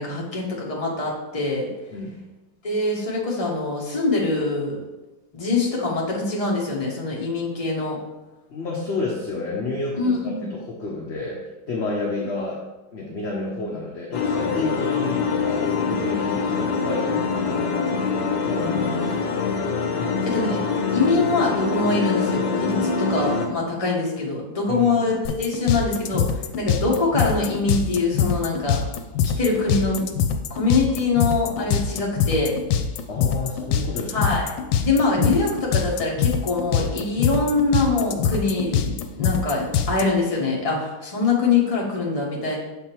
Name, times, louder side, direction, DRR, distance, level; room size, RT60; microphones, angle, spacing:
voice 1, 0.0-1.7 2.6-4.8 5.3-8.0 10.0-10.5 20.3-20.6 20.9-28.8 29.2-30.0 30.5-32.5 34.1-34.5 34.8-42.6, left 3 dB, 20° left, -3 dB, 1.1 m, -23 dB
voice 2, 8.5-10.1 10.5-12.6 12.9-17.7 18.4-19.4 20.0-20.3 24.7-25.1 33.1-34.1, left 3 dB, 50° left, -3 dB, 0.9 m, -30 dB
sound 1, 14.1-23.5, left 5 dB, 70° left, 1.3 m, -24 dB
sound 2, 25.2-40.0, left 8 dB, 90° left, 1.3 m, -23 dB
7.2 x 3.6 x 4.5 m, 1.1 s
omnidirectional pair, 1.9 m